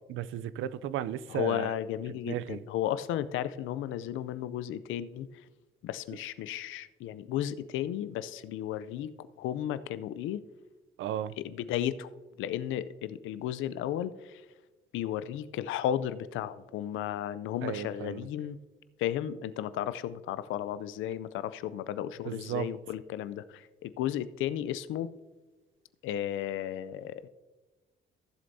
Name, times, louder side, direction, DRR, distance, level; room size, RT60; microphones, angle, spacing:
voice 1, 0.1-1.7 2.2-2.6 11.0-11.3 17.6-18.2 22.3-22.7, right 11 dB, 80° right, 0.4 m, -34 dB
voice 2, 1.3-5.4 5.8-10.4 11.4-12.1 12.4-14.5 14.9-18.6 19.0-25.1 26.0-27.3, left 11 dB, 90° left, 0.5 m, -34 dB
15.5 x 7.7 x 2.7 m
cardioid pair, 90°, 20 cm